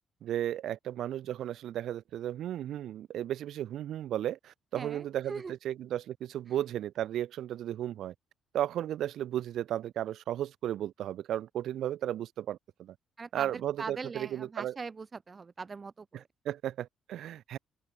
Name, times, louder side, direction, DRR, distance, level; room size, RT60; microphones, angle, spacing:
voice 1, 0.2-8.1 8.5-12.9 13.3-14.8 16.1-17.6, right 11 dB, 75° right, 6.8 m, -34 dB
voice 2, 4.7-5.5 13.2-16.2, right 4 dB, 35° right, 4.3 m, -41 dB
open air
cardioid pair, 90°, 0 cm